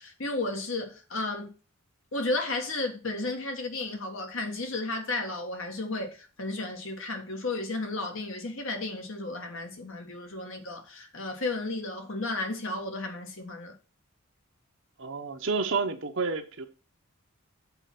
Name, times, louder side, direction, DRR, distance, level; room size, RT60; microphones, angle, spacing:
voice 1, 0.0-1.5 2.1-13.7, left 2 dB, 60° left, 1.5 m, -33 dB
voice 2, 15.0-16.7, right 4 dB, 55° right, 0.9 m, -30 dB
6.9 x 4.2 x 6.0 m
head